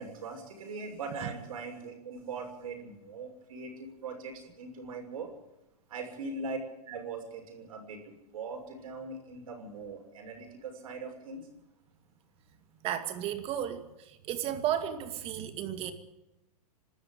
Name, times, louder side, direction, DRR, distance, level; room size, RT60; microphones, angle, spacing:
voice 1, 0.0-5.3 5.9-6.6 6.9-11.5, right 4 dB, 65° right, 3 dB, 6.3 m, -41 dB
voice 2, 12.8-15.9, right 10 dB, 30° right, 8 dB, 2.3 m, -34 dB
26.0 x 13.0 x 9.3 m, 0.97 s
hypercardioid pair, 130°, 20 cm